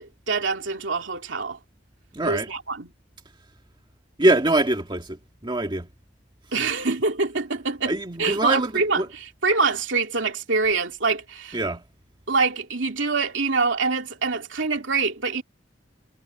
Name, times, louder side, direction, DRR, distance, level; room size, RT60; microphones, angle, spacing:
voice 1, 0.0-1.6 2.2-2.9 6.5-9.0 9.4-11.6 12.3-15.4, right 4 dB, 75° right, 2.9 m, -25 dB
voice 2, 2.1-2.5 4.2-5.9 6.5-6.7 7.8-9.1 11.5-11.8, right 2 dB, 25° right, 1.7 m, -24 dB
head